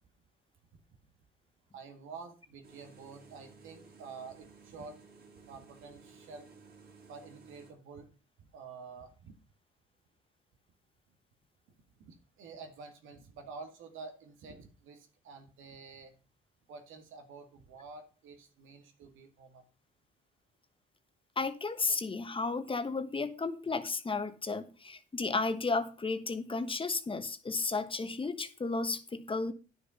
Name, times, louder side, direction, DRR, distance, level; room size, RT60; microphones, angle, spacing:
voice 1, 1.7-5.0 5.4-6.5 7.1-8.1 8.4-9.3 12.0-16.1 16.7-19.6, right 4 dB, 85° right, 6 dB, 2.2 m, -49 dB
sound 1, 2.6-7.7, right 4 dB, 50° right, 3.2 m, -56 dB
voice 2, 21.4-29.5, left 3 dB, 25° left, 10 dB, 1.3 m, -33 dB
9.9 x 6.7 x 5.7 m, 0.34 s
cardioid pair, 90°, 20 cm